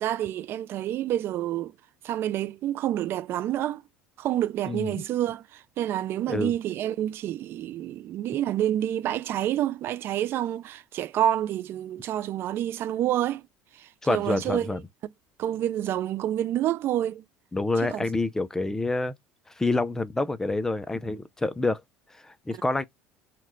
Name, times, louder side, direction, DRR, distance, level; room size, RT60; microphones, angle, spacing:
voice 1, 0.0-1.7 2.0-3.8 4.2-13.4 13.8-14.8 15.4-17.2 17.8-18.0, right 12 dB, 55° right, 0.4 m, -28 dB
voice 2, 4.7-5.0 6.3-6.5 14.0-14.8 17.5-19.1 19.6-21.8 22.2-22.8, left 2 dB, 10° left, 0.6 m, -27 dB
4.5 x 2.4 x 3.7 m
supercardioid pair, 105°, 5 cm